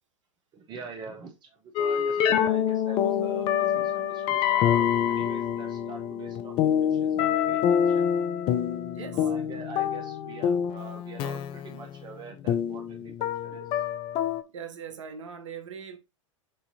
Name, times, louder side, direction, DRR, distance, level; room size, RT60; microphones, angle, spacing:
voice 1, 0.5-8.2 9.1-13.8, right 5 dB, 25° right, 0.7 m, -44 dB
sound 1, 1.8-14.4, left 9 dB, 30° left, 0.4 m, -26 dB
voice 2, 8.9-9.2 14.5-16.0, right 7 dB, 65° right, 0.7 m, -40 dB
6.7 x 2.7 x 2.6 m
figure-of-eight pair, 95°, 17 cm